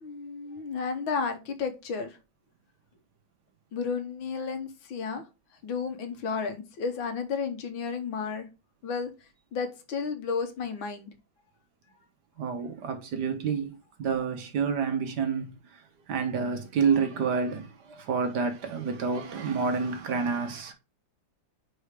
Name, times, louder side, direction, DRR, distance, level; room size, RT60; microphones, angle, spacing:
voice 1, 0.0-2.1 3.7-5.2 5.6-8.5 8.8-9.1 9.5-11.1, left 5 dB, 90° left, 1.9 m, -32 dB
voice 2, 12.4-20.7, right 5 dB, 60° right, 1.5 m, -29 dB
5.0 x 4.6 x 4.8 m
omnidirectional pair, 2.1 m